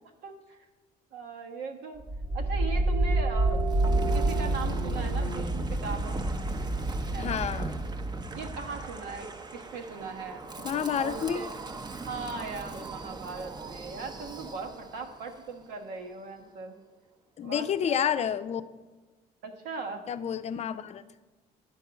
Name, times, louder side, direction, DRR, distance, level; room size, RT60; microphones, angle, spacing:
voice 1, 0.2-0.7 1.1-2.0 2.3-6.2 7.1-7.4 8.3-11.5 12.1-16.8 17.4-18.1 19.4-20.0, right 4 dB, 90° right, 4 dB, 1.2 m, -39 dB
Wind, 2.0-15.0, right 1 dB, 25° right, 0.7 m, -31 dB
sound 1, 2.3-7.9, right 4 dB, 50° right, 1.1 m, -38 dB
voice 2, 7.2-7.7 10.6-11.4 17.4-18.6 20.1-21.2, left 8 dB, 40° left, 12 dB, 0.5 m, -30 dB
10.0 x 4.7 x 6.9 m, 1.3 s
cardioid pair, 110°, 17 cm